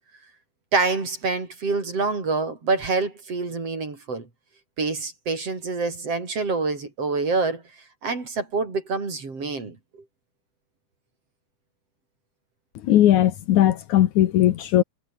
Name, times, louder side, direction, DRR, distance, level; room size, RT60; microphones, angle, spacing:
voice 1, 0.7-4.3 4.8-7.6 8.0-9.8, right 4 dB, 45° right, 5.8 m, -26 dB
voice 2, 12.8-14.8, left 12 dB, 70° left, 2.4 m, -18 dB
omnidirectional pair, 3.8 m